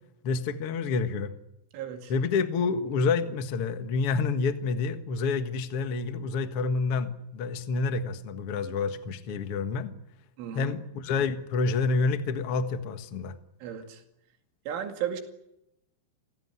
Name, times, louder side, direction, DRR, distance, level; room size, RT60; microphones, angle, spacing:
voice 1, 0.2-1.3 2.1-9.9 10.5-13.3, left 4 dB, 85° left, 9 dB, 1.2 m, -28 dB
voice 2, 1.7-2.1 10.4-10.8 13.6-14.0 14.7-15.2, right 9 dB, 90° right, 5 dB, 4.8 m, -34 dB
29.5 x 17.5 x 9.8 m, 0.85 s
omnidirectional pair, 5.4 m